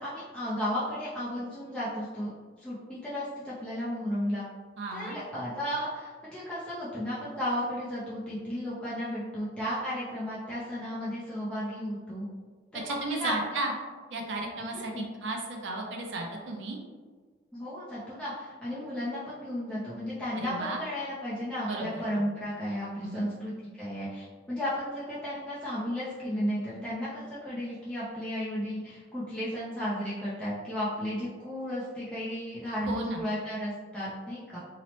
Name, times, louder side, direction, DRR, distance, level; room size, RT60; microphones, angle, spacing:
voice 1, 0.0-2.3 2.6-4.4 4.9-12.3 12.7-13.6 14.7-15.0 17.5-34.6, equal, 5° left, -9 dB, 0.4 m, -34 dB
voice 2, 4.8-5.2 12.8-13.7 14.1-14.9 15.2-16.8 20.3-20.8 21.6-21.9 22.1-22.3 23.0-23.3 32.9-33.2, right 2 dB, 75° right, 1 dB, 0.5 m, -34 dB
2.8 x 2.0 x 2.9 m, 1.5 s
head